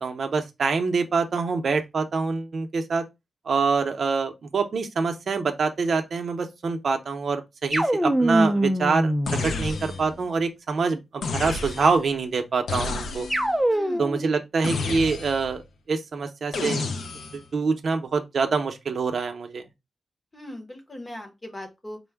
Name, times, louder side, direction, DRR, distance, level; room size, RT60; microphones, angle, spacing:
voice 1, 0.0-3.0 3.5-9.1 9.4-13.3 14.0-15.6 15.9-16.8 17.3-19.6, right 4 dB, 50° right, 0.6 m, -25 dB
sound 1, 7.7-10.2 13.3-14.3, right 1 dB, 5° right, 0.4 m, -24 dB
sound 2, 9.3-10.2 11.2-12.1 12.7-13.5 14.6-15.6 16.5-17.4, left 3 dB, 80° left, 0.5 m, -31 dB
voice 2, 13.7-14.0 20.3-22.0, left 1 dB, 15° left, 0.8 m, -39 dB
4.4 x 2.1 x 3.3 m
wide cardioid pair, 180°, 0 cm